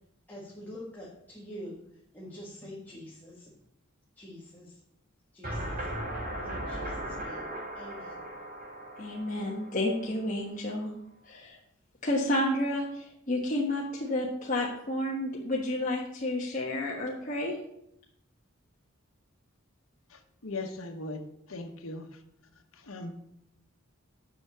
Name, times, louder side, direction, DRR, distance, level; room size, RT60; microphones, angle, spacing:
voice 1, 0.3-1.7 2.1-3.5 4.1-4.8 5.3-5.9 6.4-7.5 7.7-8.2, equal, 10° left, -5 dB, 1.7 m, -45 dB
sound 1, 5.4-10.4, right 1 dB, 40° right, 4.0 m, -38 dB
voice 2, 9.0-10.9 11.2-11.6 12.0-17.5, left 1 dB, 40° left, -3 dB, 1.3 m, -30 dB
voice 3, 20.1-22.1 22.8-23.1, left 2 dB, 85° left, 3 dB, 1.2 m, -39 dB
7.8 x 6.1 x 6.9 m, 0.77 s
head